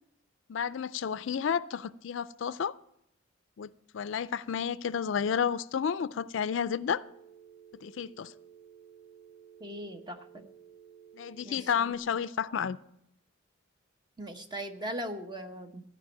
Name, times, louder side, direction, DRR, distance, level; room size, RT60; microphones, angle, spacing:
voice 1, 0.5-2.7 3.6-7.0 7.8-8.3 11.2-12.8, left 7 dB, 65° left, 17 dB, 0.4 m, -31 dB
Telephone, 7.0-12.0, right 8 dB, 20° left, 0.8 m, -55 dB
voice 2, 9.6-10.4 11.4-11.7 14.2-15.8, equal, 20° right, 6 dB, 0.9 m, -39 dB
14.0 x 5.3 x 9.0 m, 0.75 s
head